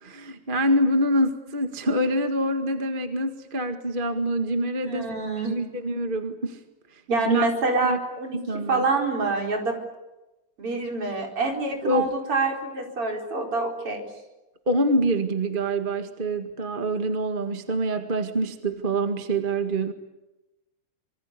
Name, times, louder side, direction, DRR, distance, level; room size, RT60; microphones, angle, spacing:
voice 1, 0.0-5.1 5.4-6.6 7.2-7.5 7.8-8.0 8.3-8.8 11.8-12.1 14.7-19.9, right 1 dB, 25° right, 6 dB, 1.4 m, -25 dB
voice 2, 4.8-5.5 7.1-8.4 8.7-9.8 10.6-14.1, right 3 dB, 45° right, 2 dB, 5.5 m, -26 dB
26.5 x 24.5 x 8.5 m, 1.0 s
omnidirectional pair, 3.6 m